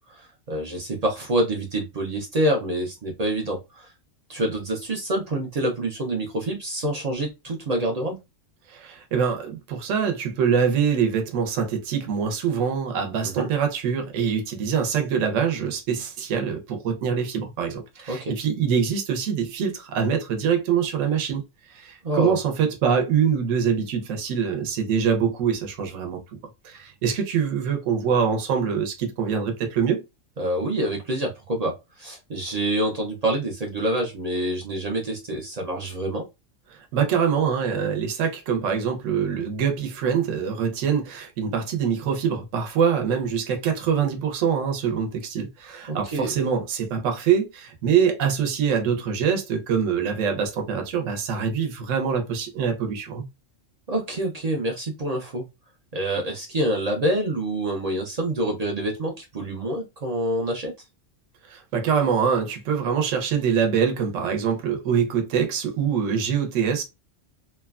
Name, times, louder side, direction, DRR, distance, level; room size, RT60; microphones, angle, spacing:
voice 1, 0.0-3.9 4.3-8.2 13.3-13.5 18.1-18.3 22.0-22.4 30.4-36.2 45.9-46.3 53.9-55.4 55.9-60.7, right 1 dB, 50° right, 0.4 m, -27 dB
voice 2, 8.7-21.4 21.7-26.2 26.6-30.0 36.7-53.3 61.5-66.8, right 7 dB, 75° right, 1.0 m, -24 dB
3.0 x 2.2 x 2.3 m
omnidirectional pair, 1.4 m